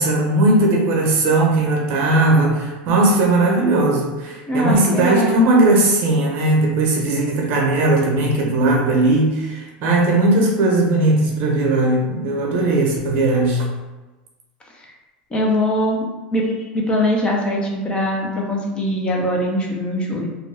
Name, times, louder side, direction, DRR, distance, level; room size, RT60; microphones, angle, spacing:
voice 1, 0.0-13.6, right 2 dB, 55° right, 0 dB, 0.8 m, -18 dB
voice 2, 4.5-5.4 15.3-16.0 16.3-20.3, left 1 dB, 20° left, 0 dB, 0.6 m, -21 dB
2.5 x 2.2 x 3.3 m, 1.2 s
supercardioid pair, 115°, 5 cm